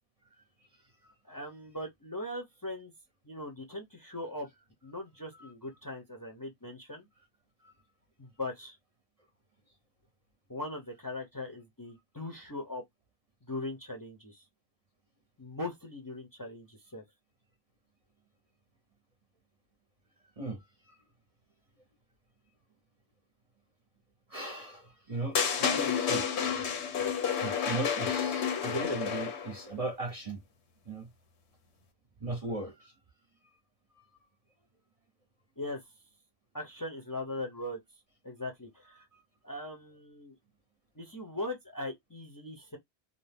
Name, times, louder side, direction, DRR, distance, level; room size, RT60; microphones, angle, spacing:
voice 1, 1.2-2.9 3.2-4.5 4.8-7.1 8.2-8.8 10.5-12.8 13.5-14.5 15.4-17.0 35.6-35.8 36.5-37.8 38.2-39.0 39.4-40.4 41.0-42.8, left 2 dB, 25° left, 0.6 m, -40 dB
voice 2, 20.4-21.0 24.3-26.7 27.0-27.1 27.4-30.4 30.8-31.1 32.2-32.9, right 2 dB, 40° right, 0.6 m, -38 dB
sound 1, 25.3-29.6, left 7 dB, 85° left, 1.0 m, -30 dB
2.7 x 2.1 x 3.3 m
omnidirectional pair, 1.1 m